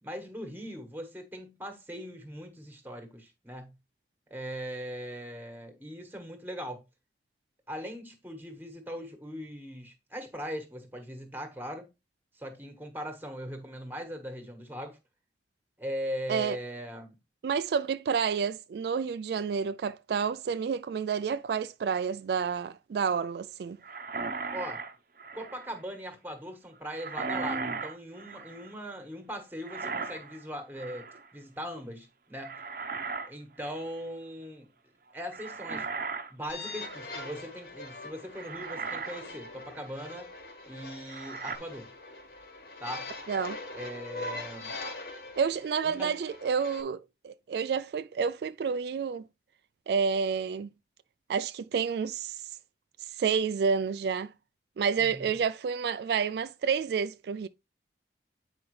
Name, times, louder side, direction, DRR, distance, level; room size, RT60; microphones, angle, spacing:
voice 1, 0.0-3.7 4.3-6.8 7.7-11.9 12.3-15.0 15.8-17.1 24.5-24.8 25.3-32.6 33.2-34.7 35.1-35.9 36.3-40.3 40.6-41.9 42.8-43.1 43.7-44.7 45.8-46.1 55.0-55.4, equal, 10° right, 1.4 m, -40 dB
voice 2, 17.4-23.8 43.3-43.6 45.4-49.2 49.9-50.7 51.3-52.4 53.1-54.3 54.8-57.5, right 6 dB, 65° right, 0.3 m, -29 dB
sound 1, 23.8-25.8 26.9-28.7 29.6-30.4 30.8-31.3 32.4-33.3 33.6-33.9 35.3-37.1 37.8-37.9 38.4-39.2 39.7-39.8 41.1-41.6, right 4 dB, 50° right, 0.8 m, -37 dB
sound 2, 36.5-46.8, left 2 dB, 65° left, 1.8 m, -42 dB
8.7 x 4.9 x 3.2 m
head